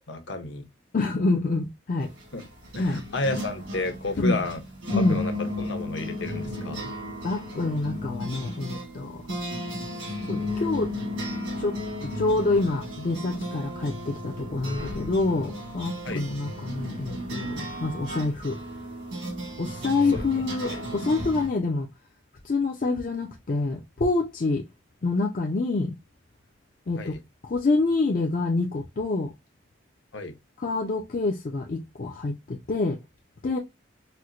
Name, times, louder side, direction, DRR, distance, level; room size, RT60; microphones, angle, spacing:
voice 1, 0.1-0.6 2.3-2.4 2.7-4.6 5.1-6.9 16.0-16.2 20.3-20.4 20.7-20.8 27.0-27.2 30.1-30.3, left 2 dB, 65° left, 0.8 m, -32 dB
voice 2, 0.9-2.1 2.8-3.0 4.2-4.4 4.9-5.2 7.2-9.2 10.3-10.9 11.6-11.7 12.0-18.5 19.6-21.9 22.4-24.6 25.0-25.9 26.9-27.1 27.4-29.3 30.6-33.0 33.4-33.6, left 3 dB, 45° left, 0.4 m, -26 dB
sound 1, 2.0-21.5, left 1 dB, 75° right, 1.8 m, -34 dB
4.3 x 2.1 x 2.4 m
head